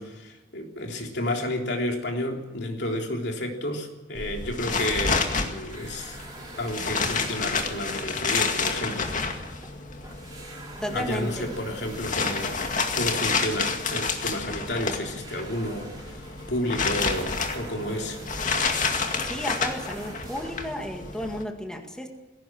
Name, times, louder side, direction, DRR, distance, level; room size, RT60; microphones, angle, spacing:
voice 1, 0.0-6.2 6.6-9.1 10.9-18.2, left 1 dB, 65° left, 2 dB, 3.6 m, -31 dB
sound 1, 4.1-21.4, left 4 dB, 45° left, 2.1 m, -30 dB
sound 2, 5.7-9.8 10.0-20.8, right 2 dB, 20° right, 4.8 m, -46 dB
voice 2, 10.8-11.5 19.2-22.1, equal, 5° left, 3 dB, 2.0 m, -33 dB
20.0 x 17.0 x 7.7 m, 1.2 s
head